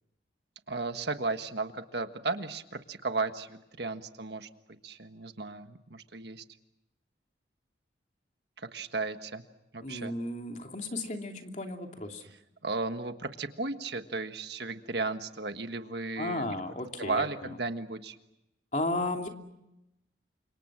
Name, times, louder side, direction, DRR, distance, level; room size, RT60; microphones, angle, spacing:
voice 1, 0.7-4.5 4.8-6.4 8.6-9.4 9.7-10.1 12.6-16.6 17.0-18.2, right 3 dB, 60° right, 8 dB, 1.5 m, -35 dB
voice 2, 9.8-12.2 16.2-17.5 18.7-19.3, left 2 dB, 40° left, 3 dB, 2.8 m, -34 dB
30.0 x 26.5 x 6.2 m, 0.89 s
head